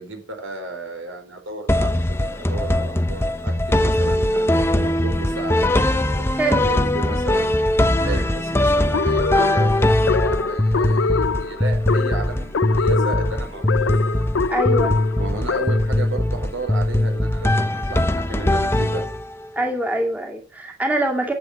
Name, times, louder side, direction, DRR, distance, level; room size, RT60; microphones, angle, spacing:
voice 1, 0.0-5.7 6.1-7.6 8.0-14.0 15.2-19.0, right 3 dB, 75° right, 4 dB, 4.8 m, -33 dB
sound 1, 1.7-19.5, left 1 dB, 10° left, 0.7 m, -21 dB
voice 2, 8.0-8.3 14.5-15.0 19.5-21.3, right 1 dB, 10° right, 1 dB, 2.2 m, -24 dB
sound 2, 8.9-16.0, left 4 dB, 70° left, 0.6 m, -24 dB
11.5 x 8.0 x 8.2 m, 0.39 s
head